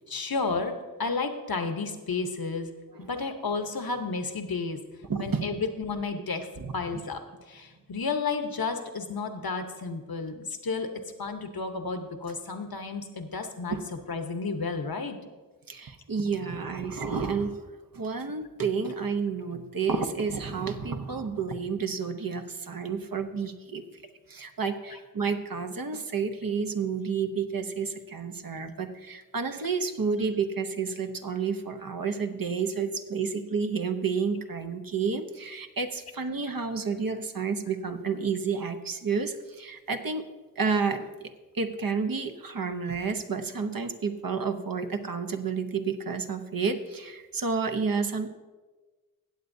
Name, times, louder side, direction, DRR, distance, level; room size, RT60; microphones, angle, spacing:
voice 1, 0.1-2.7 3.1-4.8 5.2-6.5 6.7-7.2 7.5-10.9 11.2-13.8 14.1-15.2 24.9-25.0, left 4 dB, 80° left, 7 dB, 0.9 m, -32 dB
voice 2, 5.1-5.4 6.6-7.0 13.7-13.9 15.7-17.6 17.9-23.8 24.3-40.2 40.6-41.1 41.5-48.3, right 5 dB, 70° right, 7 dB, 0.8 m, -30 dB
16.0 x 8.1 x 2.7 m, 1.3 s
wide cardioid pair, 40°, 35 cm